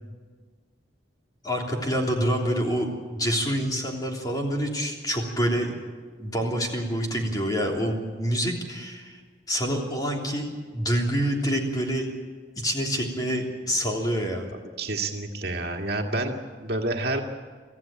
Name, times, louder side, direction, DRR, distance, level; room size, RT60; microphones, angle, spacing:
voice 1, 1.4-5.7 6.2-9.2 9.5-10.5 10.7-12.1 12.5-14.5, equal, 20° left, 0 dB, 3.3 m, -27 dB
voice 2, 14.8-17.2, right 2 dB, 60° right, 2 dB, 2.1 m, -29 dB
25.0 x 15.0 x 9.0 m, 1.5 s
head